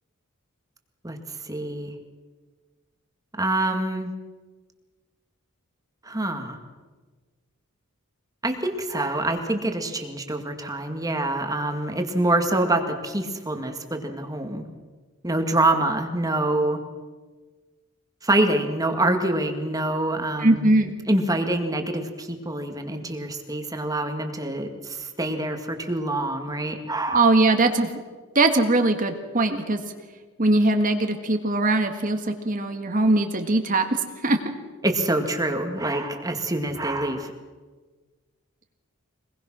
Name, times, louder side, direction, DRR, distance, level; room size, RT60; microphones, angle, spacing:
voice 1, 1.0-2.0 3.4-4.1 6.0-6.6 8.4-14.6 15.2-16.8 18.2-20.7 21.1-27.2 34.8-37.3, right 1 dB, 15° right, 5 dB, 2.0 m, -26 dB
voice 2, 20.4-20.9 27.1-27.9 28.4-29.8 30.4-33.9 34.2-34.4, right 2 dB, 40° right, 6 dB, 1.7 m, -21 dB
25.0 x 20.5 x 6.3 m, 1.4 s
head